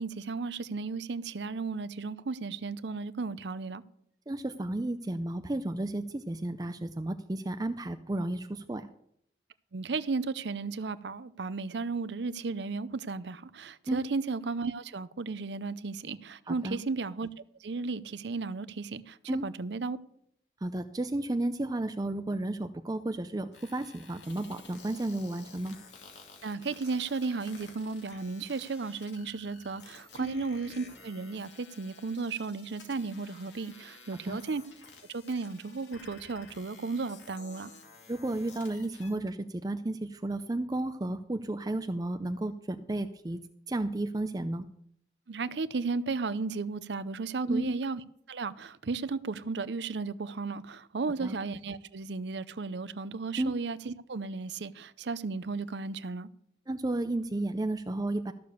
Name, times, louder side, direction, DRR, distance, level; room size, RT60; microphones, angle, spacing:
voice 1, 0.0-3.8 9.7-17.3 17.6-19.2 19.4-20.0 26.4-34.6 35.1-37.7 45.3-48.0 48.3-56.3, right 4 dB, 75° right, 0.6 m, -34 dB
voice 2, 4.3-8.9 13.9-14.0 16.5-16.8 19.3-19.4 20.6-25.8 30.2-30.4 34.3-34.4 38.1-43.4 43.7-44.7 47.5-47.8 51.2-51.4 53.4-53.5 56.7-58.3, right 2 dB, 20° right, 0.4 m, -33 dB
sound 1, 23.5-39.2, left 4 dB, 85° left, 2.5 m, -53 dB
14.0 x 6.8 x 6.8 m
head